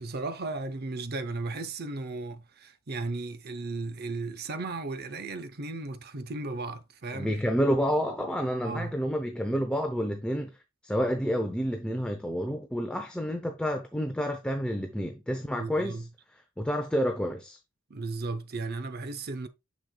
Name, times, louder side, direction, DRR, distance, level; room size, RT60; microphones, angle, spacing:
voice 1, 0.0-7.4 8.6-8.9 15.6-16.1 17.9-19.5, right 3 dB, 50° right, 0.7 m, -35 dB
voice 2, 7.1-10.6 10.8-16.0 16.6-17.6, equal, 5° left, 0.7 m, -29 dB
6.5 x 6.4 x 2.3 m
head